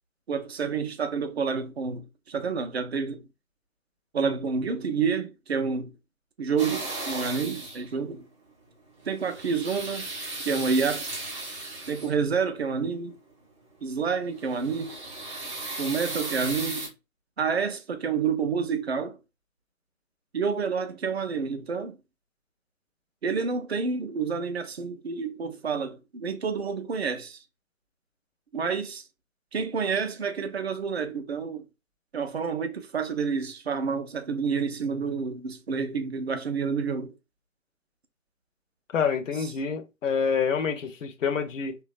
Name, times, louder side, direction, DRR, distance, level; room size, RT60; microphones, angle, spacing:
voice 1, 0.3-3.2 4.1-5.9 6.4-8.3 9.1-10.1 10.4-11.1 11.9-13.2 13.8-15.0 15.8-16.9 17.4-19.2 20.3-22.0 23.2-27.4 28.5-29.0 29.5-31.6 32.1-37.1, right 5 dB, 50° right, 0.5 m, -29 dB
sound 1, 6.6-7.9 9.0-12.3 14.3-16.9, right 2 dB, 20° right, 0.7 m, -36 dB
voice 2, 38.9-41.8, left 6 dB, 60° left, 0.5 m, -27 dB
2.9 x 2.3 x 2.4 m
figure-of-eight pair, 140°, 43 cm